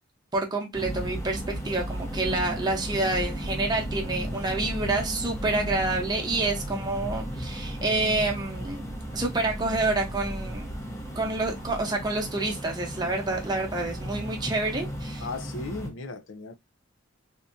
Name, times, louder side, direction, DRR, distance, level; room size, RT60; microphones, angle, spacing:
voice 1, 0.3-8.9 9.1-10.7 11.1-15.2, right 2 dB, 20° right, 0.8 m, -28 dB
sound 1, 0.7-15.9, equal, 15° left, 0.7 m, -35 dB
voice 2, 15.2-16.5, left 3 dB, 65° left, 0.5 m, -36 dB
3.5 x 2.7 x 2.6 m
head